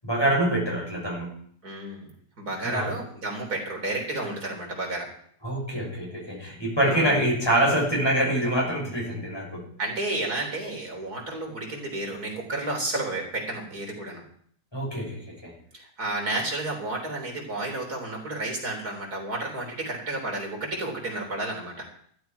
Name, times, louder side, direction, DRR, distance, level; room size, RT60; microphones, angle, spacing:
voice 1, 0.0-1.3 2.6-2.9 5.4-9.7 14.7-15.5, right 1 dB, 15° left, -4 dB, 6.7 m, -25 dB
voice 2, 1.6-2.1 2.4-5.1 6.9-7.2 9.8-14.2 15.7-21.8, right 2 dB, 70° right, 0 dB, 4.3 m, -31 dB
14.5 x 14.0 x 4.6 m, 0.62 s
omnidirectional pair, 1.7 m